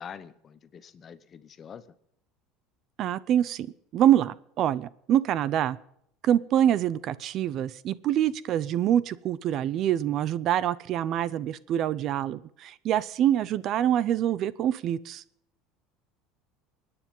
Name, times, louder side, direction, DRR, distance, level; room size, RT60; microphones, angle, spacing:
voice 1, 0.0-1.9, left 7 dB, 30° left, 14 dB, 0.9 m, -45 dB
voice 2, 3.0-3.7 3.9-5.8 6.2-15.2, right 11 dB, 45° right, 19 dB, 0.6 m, -25 dB
24.5 x 9.7 x 5.5 m, 0.74 s
cardioid pair, 150°, 0 cm